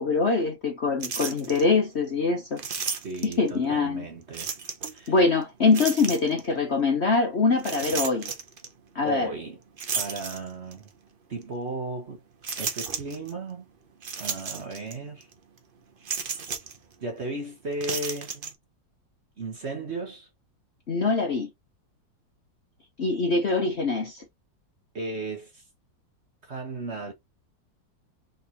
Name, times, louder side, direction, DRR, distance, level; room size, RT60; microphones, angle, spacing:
voice 1, 0.0-2.6 3.2-4.0 5.1-8.3 8.9-9.3 20.9-21.5 23.0-24.2, left 4 dB, 45° left, 1.0 m, -24 dB
sound 1, 1.0-1.6 2.6-3.5 4.3-5.1 5.7-6.5 7.6-8.7 9.8-10.8 11.4-11.5 12.4-13.3 14.0-15.0 15.2-15.3 16.0-16.8 17.7-18.5, right 5 dB, 55° right, 0.5 m, -33 dB
voice 2, 3.0-4.5 4.9-5.1 9.0-9.6 9.9-10.9 11.3-12.2 12.6-13.7 14.2-15.3 17.0-18.5 19.4-20.3 24.9-25.6 26.4-27.1, right 2 dB, 40° right, 1.3 m, -35 dB
3.8 x 3.8 x 2.8 m
omnidirectional pair, 2.0 m